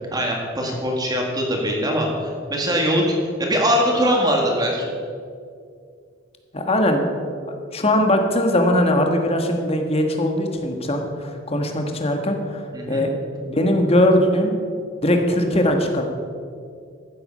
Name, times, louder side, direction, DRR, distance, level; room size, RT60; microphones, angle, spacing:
voice 1, 0.1-2.1 2.5-3.1 3.4-4.9 12.7-13.0, equal, 20° right, 0 dB, 1.8 m, -21 dB
voice 2, 6.5-7.0 7.5-13.1 13.4-14.5 15.0-16.0, left 1 dB, 30° left, 4 dB, 1.4 m, -20 dB
14.5 x 8.0 x 5.5 m, 2.3 s
head